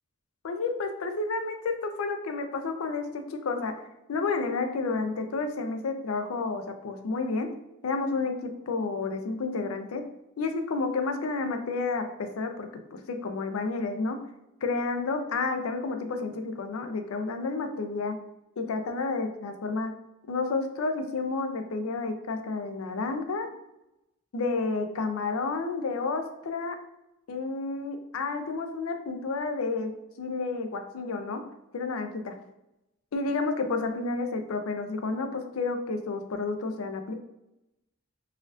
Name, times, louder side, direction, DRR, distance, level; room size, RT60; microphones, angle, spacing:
voice 1, 0.4-3.7 4.1-7.5 7.8-10.0 10.4-14.2 14.6-18.2 18.6-19.9 20.3-23.5 24.3-26.8 27.3-29.9 30.2-31.4 31.7-32.3 33.1-37.2, left 3 dB, 80° left, 6 dB, 0.5 m, -30 dB
4.2 x 2.4 x 2.5 m, 0.91 s
head